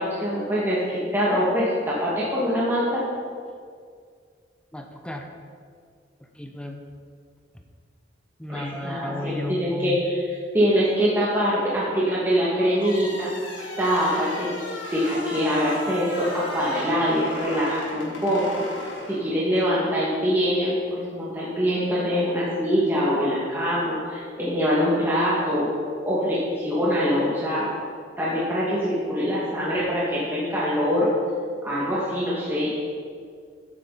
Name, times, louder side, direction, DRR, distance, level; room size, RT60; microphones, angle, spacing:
voice 1, 0.0-3.0 8.5-10.2 10.5-13.3 13.8-14.5 14.9-18.5 19.1-25.7 26.0-27.7 28.2-31.1 31.6-32.7, equal, 10° right, -8 dB, 2.1 m, -24 dB
voice 2, 4.7-5.3 6.2-6.8 8.4-10.0, left 1 dB, 5° left, 4 dB, 0.9 m, -33 dB
sound 1, 12.7-19.7, left 1 dB, 75° left, 2.3 m, -36 dB
15.0 x 9.9 x 4.2 m, 2.1 s
head